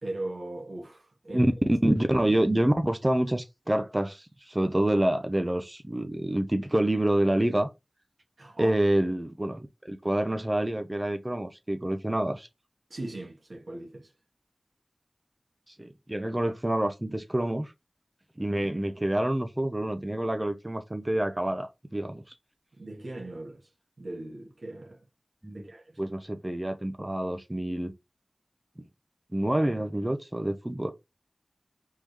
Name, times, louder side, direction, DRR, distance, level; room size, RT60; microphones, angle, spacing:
voice 1, 0.0-1.5 8.4-8.8 12.9-14.1 22.7-23.7 24.0-25.0 25.5-26.1, right 2 dB, 80° right, 1.5 m, -39 dB
voice 2, 1.3-7.7 8.6-12.5 15.7-17.7 18.4-22.2 25.4-25.7 26.0-27.9 29.3-30.9, right 1 dB, 25° right, 0.7 m, -27 dB
4.8 x 3.7 x 2.9 m
wide cardioid pair, 50°, 0 cm